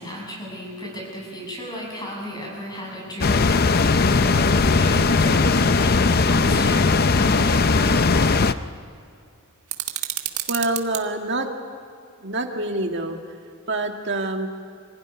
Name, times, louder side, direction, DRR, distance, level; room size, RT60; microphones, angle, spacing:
voice 1, 0.0-8.3, equal, 20° left, -1 dB, 7.4 m, -34 dB
sound 1, 3.2-8.5, left 4 dB, 45° left, 0.6 m, -18 dB
sound 2, 9.7-11.0, right 13 dB, 90° right, 1.6 m, -29 dB
voice 2, 10.5-11.5 12.2-13.2 13.7-14.5, right 2 dB, 55° right, 3 dB, 2.2 m, -26 dB
26.5 x 16.0 x 9.9 m, 2.4 s
head